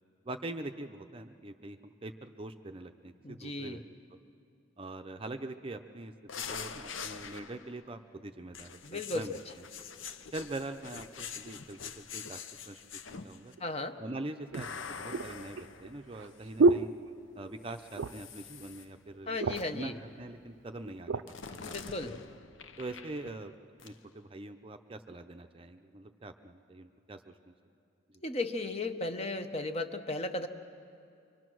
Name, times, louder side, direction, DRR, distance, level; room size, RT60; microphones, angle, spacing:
voice 1, 0.2-3.8 4.8-6.1 6.5-9.6 10.3-12.4 12.7-13.5 14.0-16.9 17.4-22.2 22.8-23.6 23.8-27.5 28.1-28.2, right 2 dB, 25° right, 7 dB, 0.6 m, -43 dB
voice 2, 3.2-3.8 8.8-9.3 13.6-14.0 19.3-20.0 21.6-22.2 28.2-30.5, left 2 dB, 30° left, 8 dB, 0.9 m, -35 dB
sound 1, 6.3-7.8 8.5-13.5 14.5-16.7 17.7-18.9 19.5-19.9 21.3-23.5 23.8-24.0, left 6 dB, 80° left, 0.8 m, -45 dB
sound 2, 13.6-13.7 14.5-17.6 17.9-18.4 18.7-18.8 19.1-19.8 20.5-21.3 21.9-22.1, right 3 dB, 75° right, 0.5 m, -30 dB
25.0 x 24.0 x 6.2 m, 2.4 s
head